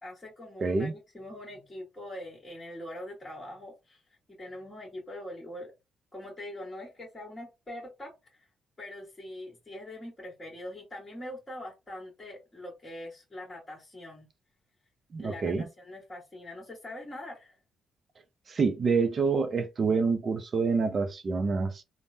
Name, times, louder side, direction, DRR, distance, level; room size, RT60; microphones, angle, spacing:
voice 1, 0.0-4.0 4.4-5.7 6.1-8.1 8.4-8.5 8.8-14.3 15.2-17.5, left 1 dB, 20° left, 1.5 m, -43 dB
voice 2, 0.6-0.9 15.1-15.6 18.5-21.8, right 4 dB, 40° right, 0.5 m, -27 dB
3.4 x 2.1 x 2.7 m
cardioid pair, 90°, 0 cm